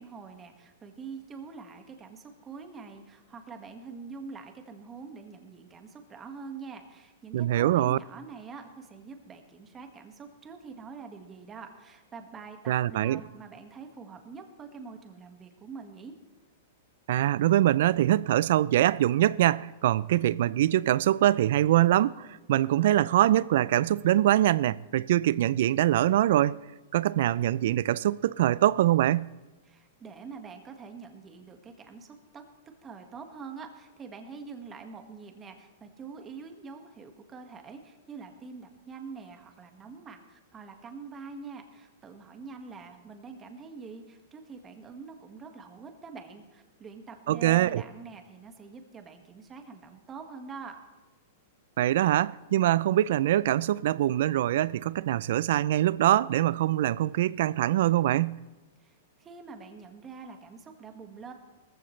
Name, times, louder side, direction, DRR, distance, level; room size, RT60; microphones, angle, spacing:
voice 1, 0.0-16.2 29.6-32.4 32.8-50.8 58.8-61.3, right 5 dB, 20° right, 1.7 m, -45 dB
voice 2, 7.3-8.0 12.7-13.2 17.1-26.6 26.9-29.3 47.3-47.8 51.8-58.4, right 13 dB, 65° right, 0.4 m, -24 dB
18.5 x 14.5 x 3.2 m
hypercardioid pair, 135°, 0 cm